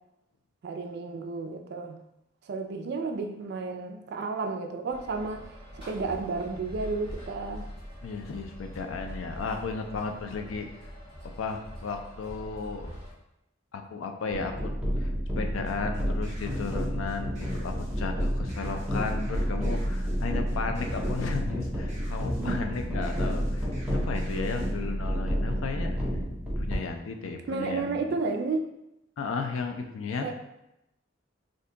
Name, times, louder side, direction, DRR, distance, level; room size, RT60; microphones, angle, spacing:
voice 1, 0.6-2.0 2.5-7.7 22.4-22.7 27.5-28.7 30.2-30.3, right 3 dB, 55° right, 5 dB, 0.3 m, -32 dB
sound 1, 4.9-13.1, equal, 25° left, 1.2 m, -43 dB
voice 2, 8.0-10.7 11.4-13.0 13.7-15.1 15.4-26.0 26.6-28.0 29.2-30.3, left 4 dB, 85° left, 5 dB, 0.4 m, -34 dB
sound 2, 14.3-26.8, equal, 5° right, 0.5 m, -30 dB
sound 3, 15.7-24.7, right 1 dB, 35° right, 0.8 m, -48 dB
2.6 x 2.2 x 3.7 m, 0.87 s
head